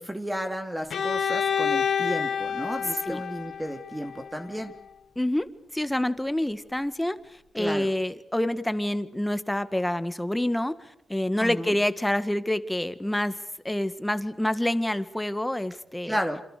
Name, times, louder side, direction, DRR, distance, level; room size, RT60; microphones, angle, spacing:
voice 1, 0.0-4.7 7.6-7.9 11.4-11.8 16.1-16.4, equal, 10° right, 6 dB, 2.6 m, -33 dB
Bowed string instrument, 0.9-4.7, left 7 dB, 75° left, 1.6 m, -29 dB
voice 2, 5.2-5.5 5.7-13.4 13.6-16.2, left 1 dB, 10° left, 12 dB, 1.8 m, -27 dB
27.5 x 27.0 x 6.8 m, 0.72 s
cardioid pair, 75°, 0 cm